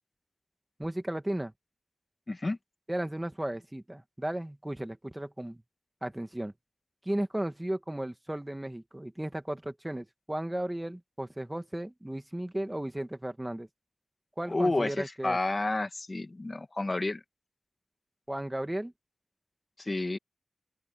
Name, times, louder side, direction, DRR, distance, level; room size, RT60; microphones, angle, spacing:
voice 1, 0.8-1.5 2.9-5.6 6.0-6.5 7.1-13.7 14.4-15.4 18.3-18.9, right 1 dB, 15° right, 2.1 m, -35 dB
voice 2, 2.3-2.6 14.5-17.2 19.8-20.2, left 2 dB, 35° left, 1.9 m, -30 dB
open air
wide cardioid pair, 80°, 0 cm